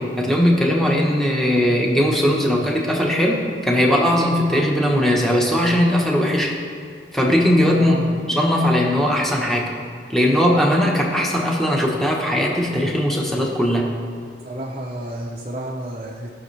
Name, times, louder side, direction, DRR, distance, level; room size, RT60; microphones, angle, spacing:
voice 1, 0.0-6.5 7.1-8.0 8.3-9.7 10.1-13.9, equal, ahead, -2 dB, 1.2 m, -19 dB
voice 2, 7.8-8.2 14.4-16.3, right 1 dB, 30° right, -4 dB, 0.8 m, -31 dB
19.0 x 6.5 x 3.4 m, 2.2 s
head